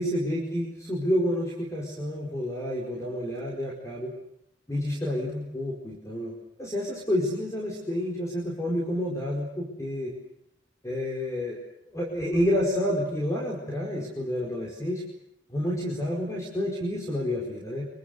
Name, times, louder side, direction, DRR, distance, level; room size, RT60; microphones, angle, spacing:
voice 1, 0.0-4.1 4.7-6.3 6.6-10.1 10.8-11.6 11.9-15.0 15.5-17.8, equal, 15° left, -2 dB, 4.9 m, -29 dB
26.5 x 23.5 x 8.1 m, 0.78 s
head